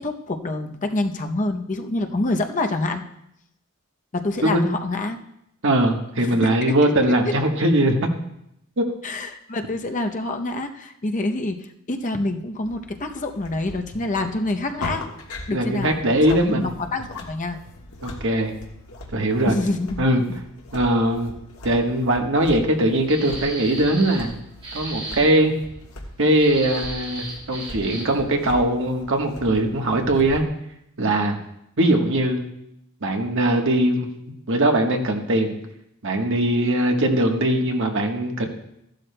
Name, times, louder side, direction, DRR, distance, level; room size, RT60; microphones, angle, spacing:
voice 1, 0.0-3.0 4.1-5.2 6.2-7.3 9.0-15.0 15.5-16.0 16.3-17.6 19.4-20.0, left 2 dB, 35° left, 5 dB, 0.7 m, -27 dB
voice 2, 5.6-8.1 8.8-8.9 15.5-16.7 18.0-18.5 19.1-19.5 20.0-20.2 20.7-21.3 21.6-24.3 24.7-25.5 26.2-30.4 31.0-31.4 31.8-32.4 33.0-34.1 34.5-35.6 36.0-38.4, right 1 dB, 60° right, 3 dB, 1.2 m, -20 dB
sound 1, 12.6-30.5, left 1 dB, 80° left, 1.4 m, -40 dB
sound 2, 23.1-24.3 24.6-25.2 26.3-28.2, right 2 dB, 25° right, 2.3 m, -35 dB
15.0 x 11.5 x 2.2 m, 0.79 s
head